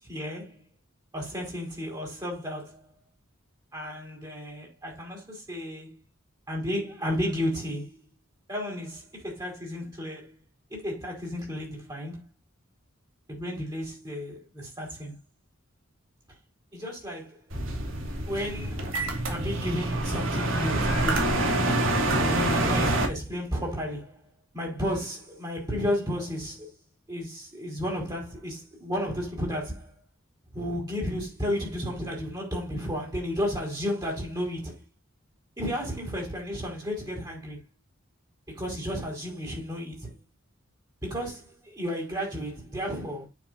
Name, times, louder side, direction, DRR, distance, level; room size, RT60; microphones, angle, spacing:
voice 1, 0.0-0.6 1.1-2.9 3.7-5.9 6.5-8.0 8.5-10.3 10.7-12.2 13.3-15.2 16.7-17.4 18.3-19.0 19.3-21.4 22.2-24.2 24.5-26.7 27.1-29.9 30.5-34.8 35.6-37.6 38.5-40.1 41.0-43.3, equal, 20° right, 4.7 m, -33 dB
sound 1, 17.5-23.1, right 2 dB, 75° right, 2.7 m, -26 dB
9.5 x 7.0 x 2.7 m
head